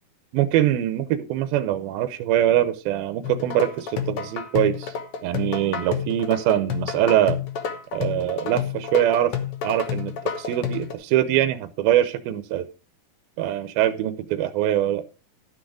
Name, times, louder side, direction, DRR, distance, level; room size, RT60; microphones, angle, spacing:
voice 1, 0.3-4.9 5.2-7.4 7.9-9.3 9.6-12.7 13.4-15.0, right 12 dB, 85° right, 12 dB, 2.6 m, -23 dB
sound 1, 3.2-10.9, left 7 dB, 65° left, 1.4 m, -29 dB
12.5 x 6.4 x 4.8 m, 0.34 s
omnidirectional pair, 4.2 m